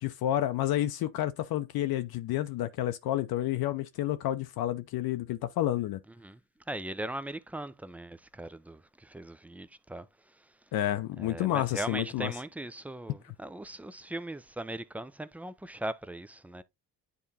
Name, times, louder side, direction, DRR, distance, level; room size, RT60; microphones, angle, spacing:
voice 1, 0.0-6.0 10.7-12.4 13.2-13.3, left 13 dB, 55° left, 0.7 m, -30 dB
voice 2, 6.7-10.1 11.2-16.6, right 1 dB, 5° right, 0.4 m, -39 dB
9.4 x 3.6 x 2.7 m
hypercardioid pair, 60°, 45 cm